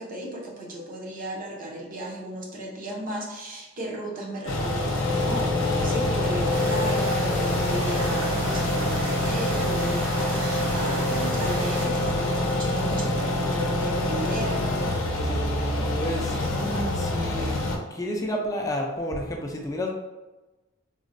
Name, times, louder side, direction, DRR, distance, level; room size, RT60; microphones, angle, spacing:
voice 1, 0.0-14.9, right 1 dB, 45° right, -1 dB, 0.6 m, -35 dB
sound 1, 4.5-17.8, left 1 dB, 80° left, 0.6 m, -25 dB
sound 2, 6.5-11.9, right 1 dB, 70° right, 1.2 m, -35 dB
voice 2, 16.0-16.4 17.0-17.6 17.9-19.9, left 1 dB, 15° left, 0 dB, 0.4 m, -31 dB
3.8 x 2.1 x 2.5 m, 1.1 s
head